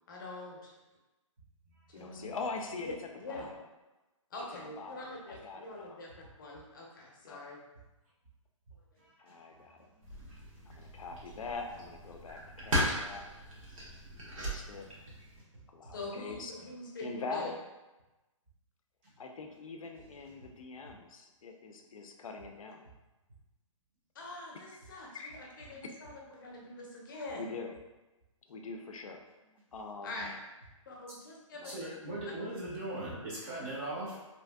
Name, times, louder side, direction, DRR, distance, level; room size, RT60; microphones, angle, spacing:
voice 1, 0.1-0.8 1.9-2.3 2.8-3.5 4.3-6.1 6.4-7.6 15.9-17.5 24.1-27.5 30.0-30.3 30.9-31.8 32.2-32.3, left 2 dB, 40° left, -2 dB, 0.6 m, -44 dB
voice 2, 1.9-2.9 3.3-3.5 4.8-6.0 7.2-7.4 9.2-9.9 10.7-13.2 14.3-14.9 15.7-16.5 17.0-17.6 19.2-22.8 25.1-25.9 27.4-27.7 28.5-29.2 29.7-30.3 31.6-31.8 34.1-34.2, left 4 dB, 85° left, 3 dB, 0.4 m, -43 dB
voice 3, 9.0-9.6 9.9-10.2 14.1-14.2 31.6-34.2, right 1 dB, 20° right, -6 dB, 0.6 m, -40 dB
sound 1, 10.0-15.4, equal, 90° right, 1.2 m, -37 dB
2.8 x 2.5 x 2.2 m, 1.1 s
hypercardioid pair, 165°, 17 cm